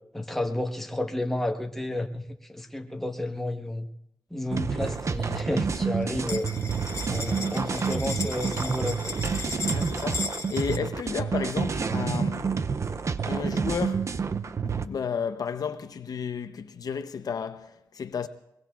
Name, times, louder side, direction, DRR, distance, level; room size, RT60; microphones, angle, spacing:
voice 1, 0.1-2.2 2.5-3.9 4.3-6.6 7.0-9.1, left 1 dB, 5° left, 1.3 m, -31 dB
sound 1, 4.5-14.9, right 5 dB, 45° right, 0.5 m, -29 dB
sound 2, 4.9-5.4 5.7-10.8, left 3 dB, 45° left, 1.1 m, -36 dB
voice 2, 9.7-12.5 13.3-14.1 14.6-18.3, left 6 dB, 70° left, 0.7 m, -33 dB
22.5 x 22.0 x 2.4 m
wide cardioid pair, 95°, 7 cm